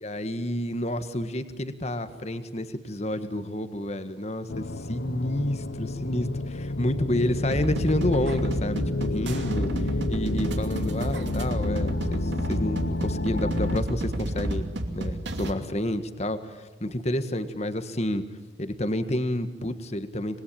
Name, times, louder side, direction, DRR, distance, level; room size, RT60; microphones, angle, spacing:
voice 1, 0.0-9.7 10.1-18.2 18.6-20.4, left 1 dB, 35° left, 10 dB, 1.6 m, -29 dB
sound 1, 4.5-13.8, left 2 dB, 70° left, 0.9 m, -30 dB
sound 2, 7.5-15.5, right 1 dB, 70° right, 2.6 m, -31 dB
26.5 x 21.5 x 8.8 m, 1.2 s
head